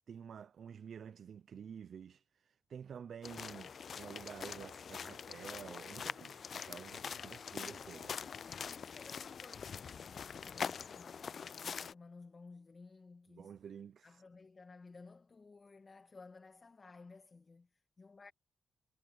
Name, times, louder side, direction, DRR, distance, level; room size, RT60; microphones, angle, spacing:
voice 1, 0.1-8.1 13.3-14.2, right 7 dB, 65° right, 0.4 m, -50 dB
sound 1, 3.2-11.9, left 6 dB, 60° left, 0.4 m, -44 dB
voice 2, 7.2-13.6 14.0-18.3, left 4 dB, 40° left, 1.8 m, -57 dB
cardioid pair, 75°, 0 cm